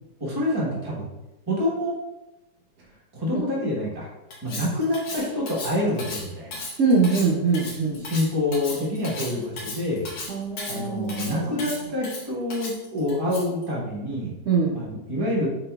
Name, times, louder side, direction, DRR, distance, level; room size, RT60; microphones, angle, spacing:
voice 1, 0.2-1.0 1.5-1.9 3.1-4.1 4.4-6.6 8.0-10.1 10.7-14.3 14.7-15.5, left 1 dB, 25° right, -4 dB, 0.5 m, -27 dB
Cutlery silverware, 4.3-13.6, left 3 dB, 65° left, 1.3 m, -36 dB
voice 2, 6.8-8.1 10.3-11.6 14.5-14.8, right 4 dB, 80° right, -4 dB, 0.7 m, -23 dB
4.2 x 4.2 x 2.2 m, 1.0 s
omnidirectional pair, 2.1 m